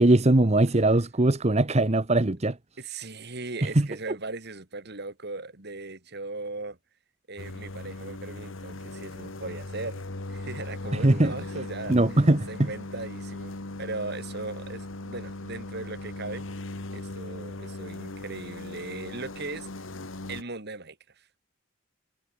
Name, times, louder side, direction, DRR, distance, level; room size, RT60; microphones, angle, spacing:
voice 1, 0.0-2.6 3.7-3.9 10.9-11.3 11.9-12.7, right 2 dB, 35° right, 1.0 m, -21 dB
voice 2, 2.8-6.8 7.3-12.0 12.5-16.4 16.9-19.8 20.3-21.4, right 3 dB, 55° right, 3.0 m, -38 dB
sound 1, 7.4-20.4, left 2 dB, 75° left, 1.7 m, -38 dB
head